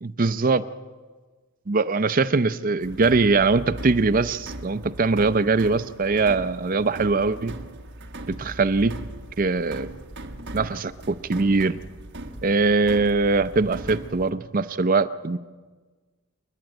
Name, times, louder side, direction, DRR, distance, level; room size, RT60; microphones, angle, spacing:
voice 1, 0.0-0.6 1.7-7.5 8.3-9.0 9.4-9.9 10.5-11.8 12.4-15.4, right 3 dB, 40° right, 12 dB, 0.6 m, -22 dB
sound 1, 2.8-14.3, right 1 dB, 55° right, 1.5 m, -39 dB
28.5 x 10.5 x 9.0 m, 1.4 s
head